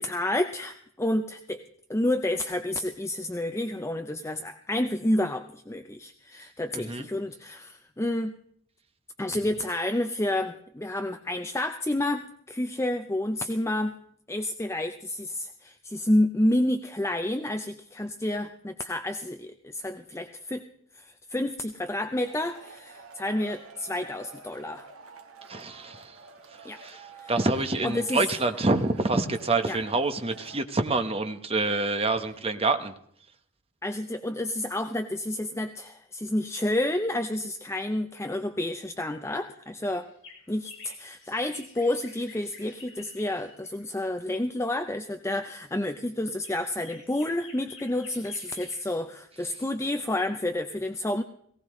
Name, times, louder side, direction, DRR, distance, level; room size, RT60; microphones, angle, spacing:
voice 1, 0.0-1.6 1.9-8.4 9.2-14.0 14.3-20.6 20.9-24.9 26.6-26.8 27.2-27.3 27.8-28.3 29.7-29.8 33.8-40.1 40.5-51.2, left 1 dB, 10° left, 6 dB, 0.6 m, -29 dB
voice 2, 6.7-7.1 25.5-26.2 26.6-32.9, right 3 dB, 25° right, 7 dB, 1.1 m, -27 dB
Male speech man speaking / Shout / Clapping, 22.2-30.6, right 4 dB, 75° right, 1.5 m, -48 dB
sound 1, 39.9-44.0 45.1-45.4 45.8-49.2 49.5-49.6 49.9-50.0, left 5 dB, 70° left, 6.2 m, -51 dB
18.5 x 17.5 x 3.2 m, 0.68 s
head